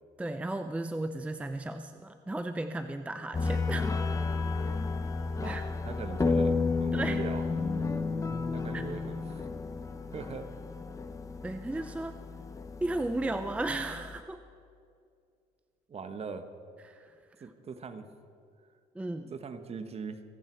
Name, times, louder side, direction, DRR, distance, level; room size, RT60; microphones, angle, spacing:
voice 1, 0.2-4.0 5.4-5.6 6.9-7.2 8.7-8.8 11.4-12.1 12.8-14.4 16.8-17.1 17.4-17.5 18.9-19.3, right 2 dB, 10° right, 8 dB, 0.5 m, -35 dB
sound 1, 3.3-14.2, left 4 dB, 20° left, 1.0 m, -32 dB
voice 2, 5.8-7.4 8.5-9.5 10.1-10.5 15.9-16.5 17.4-18.1 19.3-20.2, right 5 dB, 35° right, 9 dB, 1.2 m, -40 dB
27.0 x 9.1 x 4.5 m, 2.3 s
cardioid pair, 110°, 17 cm